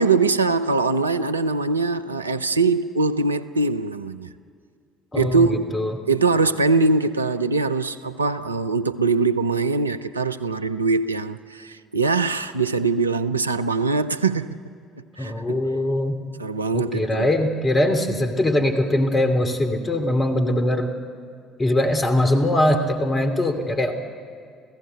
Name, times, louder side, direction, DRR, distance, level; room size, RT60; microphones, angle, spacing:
voice 1, 0.0-4.3 5.1-5.8 6.1-14.6 15.2-15.6 16.4-17.3, right 3 dB, 85° right, 0.5 m, -22 dB
voice 2, 5.1-6.0 15.2-16.2 16.7-20.9 21.6-23.9, left 1 dB, 25° left, 2.8 m, -21 dB
29.0 x 15.5 x 8.2 m
figure-of-eight pair, 55°, 0 cm